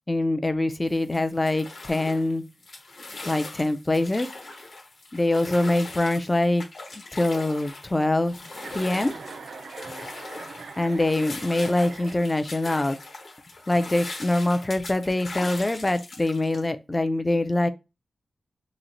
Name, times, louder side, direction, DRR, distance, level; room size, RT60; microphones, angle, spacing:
voice 1, 0.1-2.4 3.3-4.3 5.1-6.6 7.1-8.3 8.7-9.1 10.8-13.0 13.7-17.7, left 2 dB, 15° left, 0.3 m, -24 dB
footsteps in the water, 0.9-16.6, left 2 dB, 55° left, 1.0 m, -40 dB
Chuckle chortle, 8.5-12.6, right 4 dB, 85° right, 0.4 m, -42 dB
3.0 x 2.0 x 3.8 m
wide cardioid pair, 150°, 0 cm